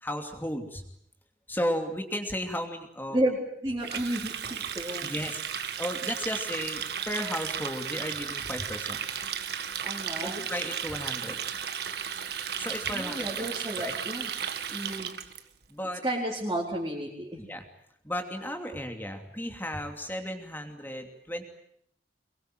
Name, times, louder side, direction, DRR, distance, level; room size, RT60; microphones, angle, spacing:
voice 1, 0.0-0.8 1.5-3.2 5.0-5.4 5.8-9.2 10.2-11.4 12.6-13.5 13.8-13.9 15.7-16.0 17.4-17.6 18.0-21.4, equal, 10° left, 5 dB, 2.8 m, -34 dB
voice 2, 3.1-5.1 9.8-10.4 12.9-14.3 14.7-15.1 16.0-17.3, right 1 dB, 20° right, -5 dB, 4.2 m, -32 dB
Water tap faucet, 3.8-15.4, right 8 dB, 60° right, 1.7 m, -34 dB
24.5 x 22.5 x 9.3 m, 0.71 s
head